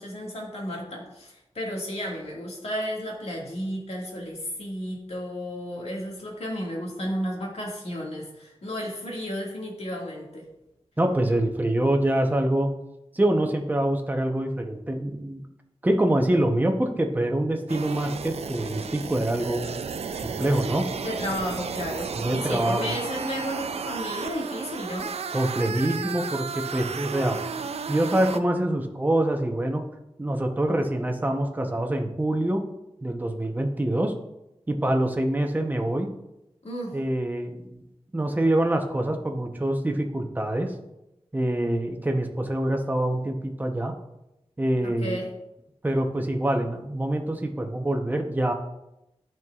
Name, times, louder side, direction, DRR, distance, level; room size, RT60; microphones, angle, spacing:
voice 1, 0.0-10.4 21.0-25.2 36.6-36.9 44.8-45.3, equal, 75° left, -2 dB, 1.9 m, -33 dB
voice 2, 11.0-12.7 13.1-15.5 15.8-19.6 20.2-20.9 22.1-22.9 25.3-27.6 27.9-29.8 30.2-32.6 33.0-34.1 34.7-36.1 36.9-37.8 38.1-40.7 41.3-43.9 44.6-45.2 45.8-48.5, right 1 dB, 15° right, 3 dB, 0.8 m, -25 dB
sound 1, 17.7-28.4, right 6 dB, 75° right, 0.4 m, -33 dB
12.5 x 4.5 x 2.4 m, 0.90 s
wide cardioid pair, 95°, 11 cm